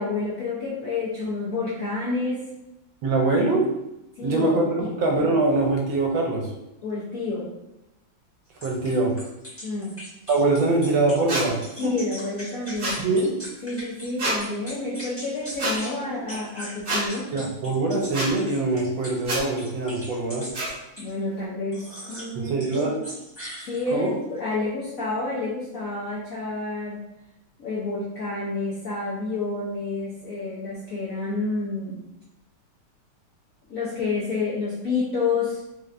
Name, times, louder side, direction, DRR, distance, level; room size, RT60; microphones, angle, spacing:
voice 1, 0.0-2.5 4.2-4.9 6.8-7.5 9.6-9.9 11.8-13.0 13.6-17.3 21.0-22.5 23.7-27.0 27.6-32.0 33.7-35.6, left 3 dB, 70° left, -6 dB, 0.8 m, -29 dB
voice 2, 3.0-3.7 4.2-6.5 8.6-9.1 10.3-12.0 13.0-13.3 17.3-20.5 22.3-23.0 23.9-24.1, right 2 dB, 75° right, 0 dB, 1.4 m, -23 dB
sound 1, 8.6-14.1 14.4-15.9 16.3-21.1 21.7-22.3 22.6-24.1, equal, 10° left, 0.7 m, -40 dB
sound 2, 11.3-11.4 12.8-13.0 14.2-14.4 15.6-15.7 16.9-17.0 18.1-18.3 19.2-19.4 20.5-20.7, right 2 dB, 40° right, 1.1 m, -26 dB
4.0 x 2.4 x 3.2 m, 0.91 s
omnidirectional pair, 2.3 m